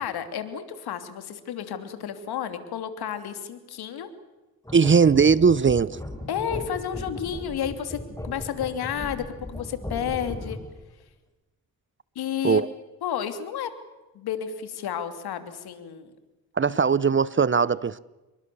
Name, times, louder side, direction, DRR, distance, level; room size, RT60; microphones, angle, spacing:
voice 1, 0.0-4.1 6.3-10.6 12.1-12.7 13.0-13.7 14.1-16.1, left 9 dB, 75° left, 9 dB, 3.1 m, -31 dB
sound 1, 4.6-10.8, left 1 dB, 10° left, 6.4 m, -37 dB
voice 2, 4.7-6.0 12.4-12.7 16.6-18.0, right 5 dB, 30° right, 20 dB, 0.8 m, -19 dB
27.5 x 23.0 x 7.1 m, 1.1 s
supercardioid pair, 65°, 38 cm